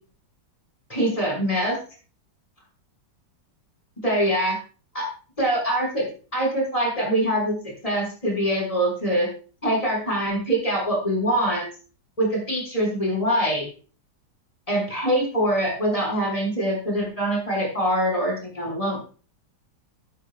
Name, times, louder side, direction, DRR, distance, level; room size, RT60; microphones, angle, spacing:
voice 1, 0.9-1.8 4.0-4.6 4.9-5.1 5.4-6.0 6.3-9.3 9.6-11.7 12.2-13.7 14.7-19.0, right 1 dB, 20° left, -2 dB, 6.4 m, -24 dB
12.0 x 12.0 x 2.6 m, 0.39 s
omnidirectional pair, 2.0 m